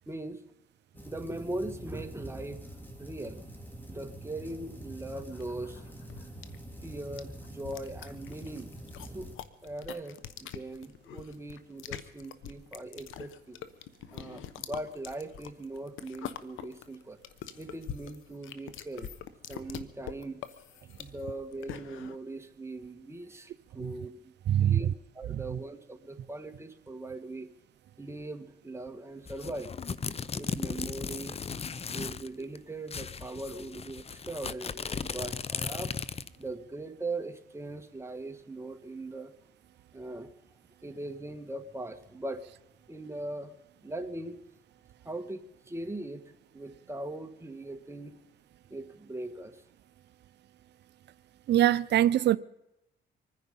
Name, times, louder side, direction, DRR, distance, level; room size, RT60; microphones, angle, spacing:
voice 1, 0.1-0.4 1.0-3.5 3.9-5.9 6.8-8.7 9.0-9.3 9.6-13.6 14.1-17.2 17.6-19.1 19.5-20.4 21.0-27.5 28.0-29.7 30.3-31.4 31.9-39.3 39.9-40.3 40.8-42.4 42.9-43.6 43.8-44.4 45.0-48.2 48.7-49.6, right 2 dB, 15° right, 1.8 m, -40 dB
sound 1, 0.9-9.4, right 1 dB, 10° left, 3.1 m, -46 dB
sound 2, 5.1-22.2, left 10 dB, 85° left, 1.1 m, -45 dB
voice 2, 24.5-24.8 25.3-25.4 51.5-52.4, right 12 dB, 60° right, 0.6 m, -23 dB
sound 3, 29.3-32.3 32.6-32.7 32.9-36.4, left 5 dB, 30° left, 0.6 m, -36 dB
24.5 x 10.0 x 5.5 m
cardioid pair, 90°, 20 cm